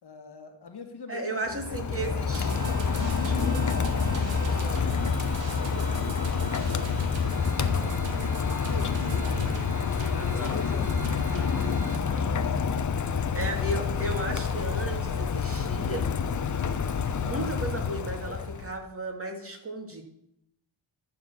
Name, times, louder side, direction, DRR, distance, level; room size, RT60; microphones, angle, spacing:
voice 1, 0.0-2.4 5.6-8.3 8.6-9.7 10.1-12.1 13.0-13.6, left 5 dB, 55° left, 5 dB, 1.6 m, -43 dB
voice 2, 1.1-2.8 3.1-3.6 4.5-4.8 10.1-10.6 12.1-12.5 13.3-16.1 17.1-20.0, right 2 dB, 30° right, 2 dB, 2.5 m, -35 dB
Rain, 1.5-18.8, left 5 dB, 40° left, 0.9 m, -28 dB
sound 1, 2.3-12.0, right 3 dB, 65° right, 2.1 m, -40 dB
13.5 x 4.4 x 6.9 m, 0.77 s
cardioid pair, 70°, 46 cm